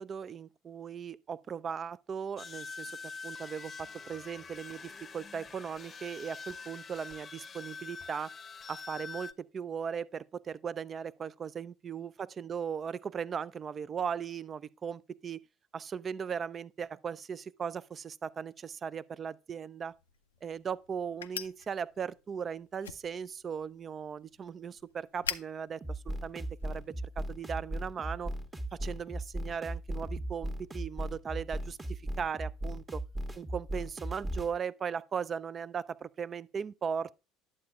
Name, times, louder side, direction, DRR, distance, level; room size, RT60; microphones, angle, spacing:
voice 1, 0.0-3.0 3.2-8.3 8.7-15.4 15.7-19.9 20.4-28.3 28.7-33.0 33.4-37.1, right 7 dB, 35° right, 0.4 m, -38 dB
sound 1, 2.4-9.3, left 4 dB, 30° left, 0.7 m, -45 dB
sound 2, 19.8-27.0, left 8 dB, 85° left, 0.4 m, -45 dB
sound 3, 25.8-34.5, right 1 dB, 20° right, 1.2 m, -37 dB
11.0 x 7.6 x 2.3 m
hypercardioid pair, 65°, 0 cm